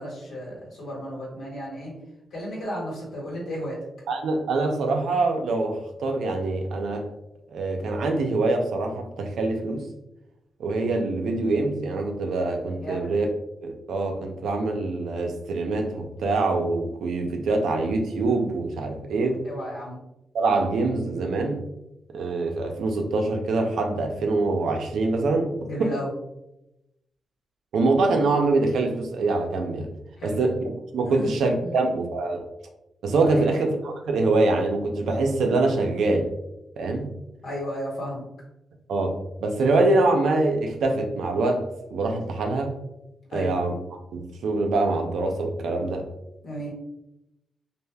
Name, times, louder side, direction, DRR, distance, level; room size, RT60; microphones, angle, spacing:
voice 1, 0.0-1.9 2.3-3.8 12.8-13.1 19.4-20.0 25.6-26.1 30.2-30.4 31.1-31.3 31.6-31.8 33.3-33.5 37.4-38.2 43.3-43.5 46.4-46.7, equal, 80° left, -4 dB, 1.3 m, -33 dB
voice 2, 4.1-7.1 7.5-9.9 10.6-13.3 13.6-19.4 20.3-21.6 22.1-25.5 25.8-25.9 27.7-29.9 30.2-32.4 33.0-36.3 36.8-37.1 38.9-41.6 41.9-42.8 43.3-43.7 44.1-46.1, right 3 dB, 85° right, 3 dB, 0.5 m, -24 dB
3.3 x 2.4 x 2.2 m, 0.88 s
cardioid pair, 90°, 0 cm